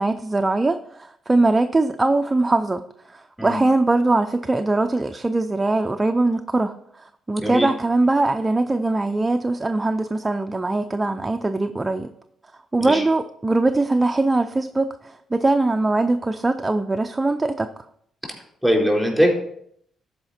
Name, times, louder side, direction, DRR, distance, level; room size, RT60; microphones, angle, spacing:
voice 1, 0.0-2.8 3.1-12.1 12.7-17.7, right 2 dB, 20° right, 7 dB, 0.5 m, -21 dB
voice 2, 18.6-19.3, equal, 5° left, -2 dB, 4.1 m, -20 dB
12.5 x 4.9 x 4.3 m, 0.70 s
cardioid pair, 90°, 0 cm